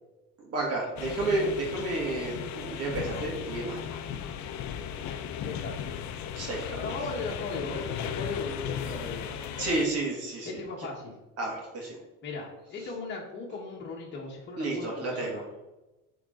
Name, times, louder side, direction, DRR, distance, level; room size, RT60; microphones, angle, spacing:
voice 1, 0.5-3.8 6.3-6.8 9.6-10.5 11.4-12.0 14.6-15.4, right 2 dB, 50° right, -2 dB, 2.1 m, -31 dB
sound 1, 1.0-9.9, left 8 dB, 60° left, 0.6 m, -36 dB
voice 2, 5.0-5.8 6.8-9.6 10.4-11.1 12.2-15.4, left 3 dB, 35° left, -3 dB, 1.4 m, -38 dB
9.3 x 3.9 x 3.8 m, 1.0 s
cardioid pair, 135°, 32 cm